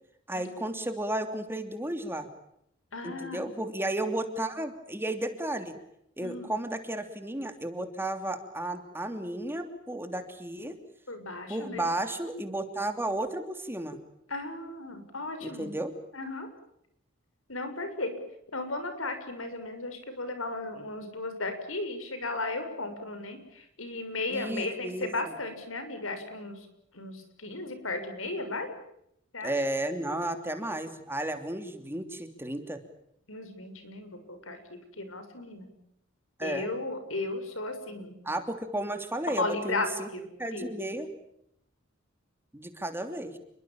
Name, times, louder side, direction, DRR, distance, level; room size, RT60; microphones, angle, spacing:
voice 1, 0.3-2.3 3.0-5.7 6.2-10.7 11.5-14.0 15.4-15.9 24.3-25.1 29.4-32.8 36.4-36.7 38.2-40.1 40.4-41.1 42.5-43.4, right 1 dB, 10° right, 7 dB, 3.0 m, -33 dB
voice 2, 2.9-3.6 6.2-6.5 11.1-11.9 14.3-15.7 16.1-16.5 17.5-18.1 18.5-26.7 26.9-28.7 29.3-29.5 33.3-34.6 35.0-35.7 36.4-38.2 39.4-40.3 40.5-40.9, left 2 dB, 85° left, 9 dB, 6.6 m, -35 dB
29.5 x 23.5 x 7.3 m, 0.75 s
head